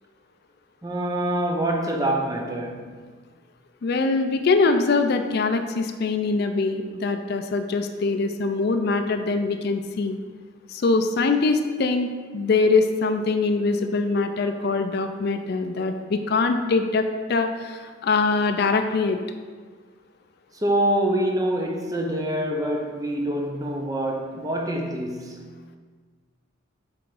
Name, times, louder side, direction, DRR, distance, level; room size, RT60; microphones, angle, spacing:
voice 1, 0.8-3.0 20.5-25.5, right 1 dB, 15° right, 0.6 m, -25 dB
voice 2, 3.8-10.2 10.7-19.2, left 3 dB, 50° left, 0.4 m, -23 dB
7.6 x 3.5 x 4.8 m
head